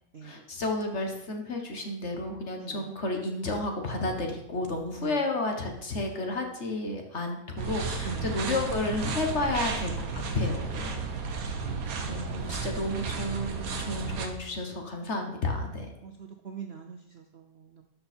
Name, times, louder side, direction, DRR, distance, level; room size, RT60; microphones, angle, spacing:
voice 1, 0.2-11.1 12.1-15.9, left 2 dB, 40° left, 3 dB, 1.4 m, -32 dB
sound 1, 7.6-14.3, right 4 dB, 55° right, 1.4 m, -33 dB
voice 2, 12.0-12.6 16.0-17.8, right 6 dB, 85° right, 4 dB, 0.5 m, -43 dB
12.5 x 5.4 x 4.4 m, 0.82 s
omnidirectional pair, 2.0 m